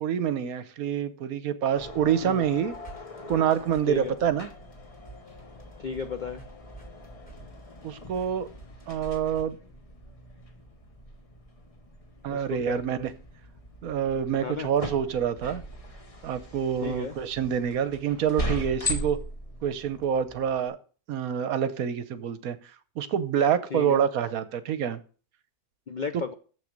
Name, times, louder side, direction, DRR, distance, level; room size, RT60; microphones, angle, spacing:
voice 1, 0.0-2.7 3.3-4.5 7.8-8.5 8.9-9.6 12.2-13.1 13.8-15.6 16.2-19.2 19.6-20.8 21.1-22.6 23.0-25.0, right 8 dB, 70° right, 13 dB, 1.2 m, -27 dB
sound 1, 1.8-20.7, left 1 dB, 25° left, 1.0 m, -40 dB
sound 2, 2.6-9.5, right 4 dB, 5° left, 3.3 m, -50 dB
voice 2, 5.8-6.4 12.3-12.8 14.4-14.7 16.8-17.2 23.7-24.0 25.9-26.3, left 5 dB, 70° left, 9 dB, 0.4 m, -33 dB
7.3 x 6.5 x 6.5 m, 0.40 s
omnidirectional pair, 1.6 m